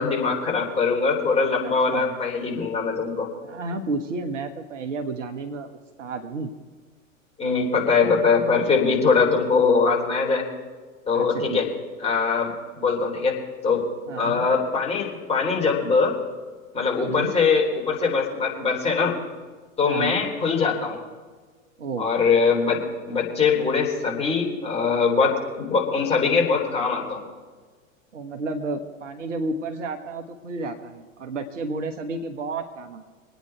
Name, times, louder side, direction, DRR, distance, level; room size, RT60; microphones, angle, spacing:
voice 1, 0.0-3.3 7.4-10.5 11.1-11.7 12.0-13.4 13.6-13.9 14.2-16.2 16.7-19.2 19.8-21.0 22.0-22.8 23.1-27.2, left 5 dB, 15° left, -2 dB, 3.8 m, -22 dB
voice 2, 1.6-2.2 3.4-5.7 6.0-6.5 11.1-11.8 14.1-14.4 17.0-17.3 19.8-20.2 21.8-22.1 28.1-33.0, right 3 dB, 65° right, 5 dB, 1.5 m, -31 dB
25.5 x 9.3 x 4.6 m, 1.4 s
figure-of-eight pair, 90°, 40 cm